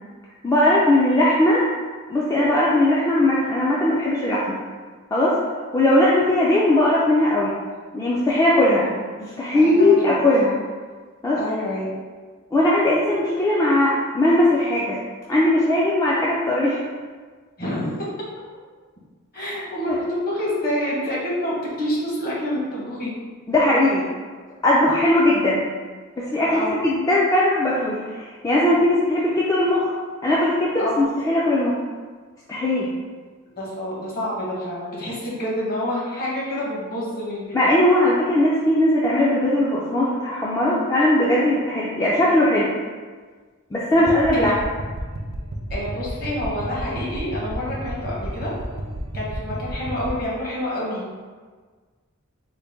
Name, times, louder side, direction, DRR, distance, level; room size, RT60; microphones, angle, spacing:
voice 1, 0.4-1.6 2.1-4.6 5.1-5.4 5.7-7.5 7.9-8.9 9.2-10.5 11.2-11.4 12.5-15.0 15.3-16.8 19.4-19.5 19.9-20.0 23.5-24.0 24.6-25.6 26.2-29.9 30.2-31.8 32.5-32.9 37.5-42.7 43.7-44.5, left 1 dB, 15° left, -7 dB, 0.3 m, -19 dB
voice 2, 9.5-10.1 11.4-11.9 17.6-18.1 19.3-23.2 26.5-26.8 30.8-31.0 33.6-37.5 44.3-44.5 45.7-48.5 49.1-51.0, left 1 dB, 45° left, -5 dB, 1.1 m, -27 dB
sound 1, 43.9-50.2, right 1 dB, 50° right, 0.5 m, -32 dB
3.9 x 2.1 x 3.5 m, 1.5 s
head